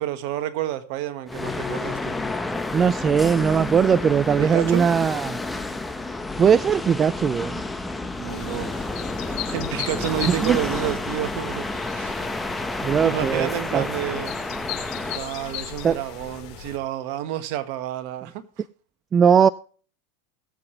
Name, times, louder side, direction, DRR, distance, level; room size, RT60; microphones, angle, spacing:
voice 1, 0.0-2.2 4.4-4.9 8.2-8.9 9.2-12.3 12.7-14.3 15.1-18.4, right 12 dB, 60° right, 1.6 m, -30 dB
sound 1, 1.3-16.4, left 2 dB, 10° left, 1.3 m, -30 dB
voice 2, 2.7-5.4 6.4-7.6 10.3-10.6 12.8-13.9 15.8-16.0 19.1-19.5, right 7 dB, 25° right, 0.4 m, -19 dB
sound 2, 8.3-16.8, left 10 dB, 50° left, 5.0 m, -37 dB
20.0 x 7.8 x 3.3 m
hypercardioid pair, 110°, 0 cm